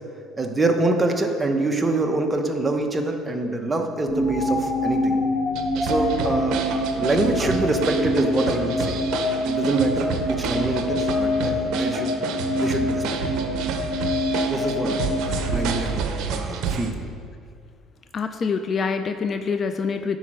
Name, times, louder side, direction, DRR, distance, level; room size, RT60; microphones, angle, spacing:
voice 1, 0.4-5.2 5.7-9.0 9.4-12.1 12.6-13.2 14.5-17.0, right 2 dB, 15° right, 3 dB, 1.0 m, -25 dB
sound 1, 4.1-16.2, left 1 dB, 80° left, 1.7 m, -26 dB
sound 2, 5.5-16.9, right 6 dB, 70° right, 0.7 m, -30 dB
voice 2, 18.1-20.2, left 5 dB, 40° left, 9 dB, 0.4 m, -25 dB
10.0 x 4.4 x 6.3 m, 2.2 s
cardioid pair, 105°, 0 cm